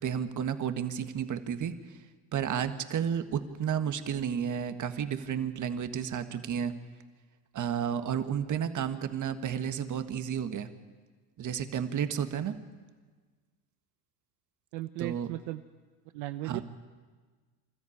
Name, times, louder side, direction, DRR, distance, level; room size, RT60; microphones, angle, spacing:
voice 1, 0.0-1.7 2.3-6.7 7.5-10.7 11.4-12.6 15.0-15.3 16.4-16.6, right 8 dB, 40° right, 9 dB, 1.7 m, -32 dB
voice 2, 14.7-15.6 16.1-16.6, right 17 dB, 70° right, 9 dB, 0.8 m, -36 dB
26.0 x 13.5 x 8.6 m, 1.5 s
hypercardioid pair, 80°, 45 cm